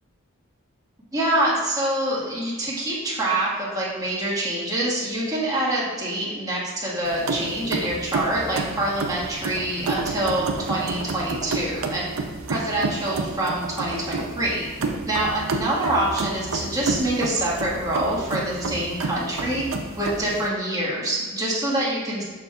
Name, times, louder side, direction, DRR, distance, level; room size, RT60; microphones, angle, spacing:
voice 1, 1.1-12.1 12.5-14.7 15.1-19.6 20.0-22.2, right 1 dB, 20° right, -6 dB, 1.6 m, -25 dB
sound 1, 7.0-20.5, right 3 dB, 65° right, 0.6 m, -30 dB
6.6 x 6.3 x 2.4 m, 1.4 s
head